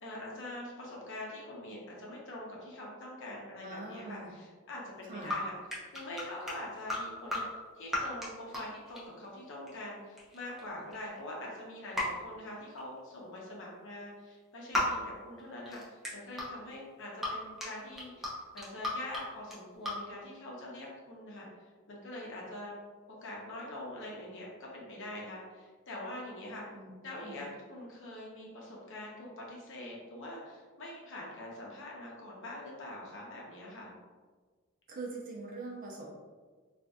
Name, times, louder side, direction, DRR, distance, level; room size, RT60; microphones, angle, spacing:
voice 1, 0.0-5.6 5.9-7.4 7.7-21.5 21.9-22.8 23.2-26.6 27.0-33.9, left 1 dB, 60° left, -3 dB, 0.9 m, -44 dB
voice 2, 3.6-4.3 5.1-5.3 26.7-26.9 27.2-27.4 34.9-36.2, right 3 dB, 40° right, -2 dB, 0.7 m, -42 dB
sound 1, 5.3-5.4 5.7-7.0 7.3-7.4 7.9-8.3 8.5-9.3 9.7-9.9 10.2-11.2 11.9-12.0 12.8-13.0 14.7-14.9 15.4-16.5 17.2-17.3 17.6-18.3 18.6-19.2 19.5-19.9, left 2 dB, ahead, 0.7 m, -34 dB
3.9 x 2.6 x 2.3 m, 1.4 s
head